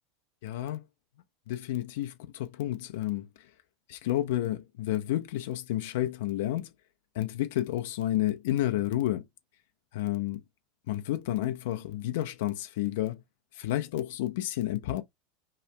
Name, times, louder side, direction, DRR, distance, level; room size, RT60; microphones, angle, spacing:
voice 1, 0.4-0.8 1.5-3.3 3.9-6.7 7.1-9.3 9.9-10.4 10.9-13.2 13.5-15.0, left 14 dB, 65° left, 0.4 m, -30 dB
2.8 x 2.4 x 3.1 m
hypercardioid pair, 85°, 0 cm